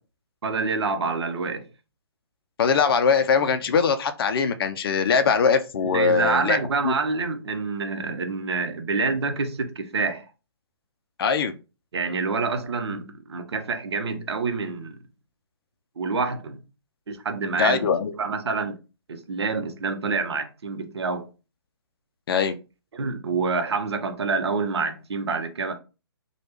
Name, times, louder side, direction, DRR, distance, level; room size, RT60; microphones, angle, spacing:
voice 1, 0.4-1.7 5.8-10.3 11.9-15.0 16.0-16.6 17.1-18.7 19.1-21.3 22.9-25.7, right 4 dB, 70° right, 0.7 m, -27 dB
voice 2, 2.6-6.6 6.8-6.9 11.2-11.5 17.6-18.1 22.3-22.6, left 6 dB, 60° left, 0.4 m, -21 dB
3.2 x 2.3 x 3.0 m
hypercardioid pair, 135°, 14 cm